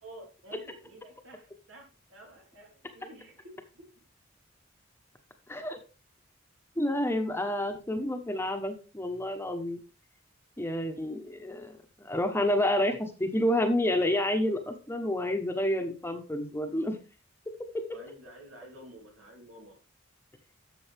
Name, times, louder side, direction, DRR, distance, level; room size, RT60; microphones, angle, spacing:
voice 1, 0.0-3.9 17.9-19.8, right 1 dB, 80° right, 0 dB, 3.7 m, -50 dB
voice 2, 5.5-5.8 6.8-9.8 10.6-17.0 17.7-17.8, left 1 dB, 10° left, 6 dB, 1.1 m, -29 dB
12.0 x 7.0 x 3.5 m, 0.32 s
head